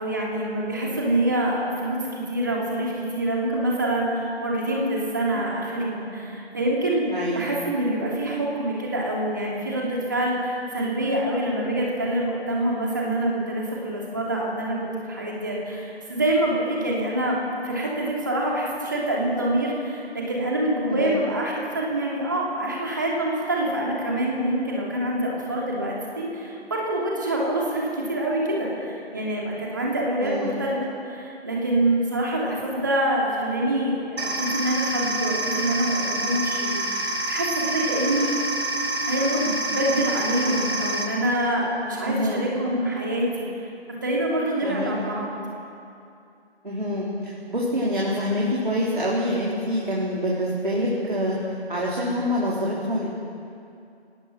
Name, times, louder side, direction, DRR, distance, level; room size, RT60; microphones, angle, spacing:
voice 1, 0.0-17.4 17.6-30.8 31.0-38.3 38.6-43.7 44.0-45.3, right 1 dB, 20° right, -3 dB, 2.7 m, -26 dB
voice 2, 7.1-7.5 20.9-21.2 30.2-30.5 42.0-42.5 44.6-44.9 46.6-51.4 51.7-53.1, equal, 50° right, -5 dB, 3.7 m, -26 dB
sound 1, 34.2-41.0, right 2 dB, 70° right, 5.2 m, -27 dB
24.0 x 18.5 x 6.1 m, 2.6 s
figure-of-eight pair, 170°, 33 cm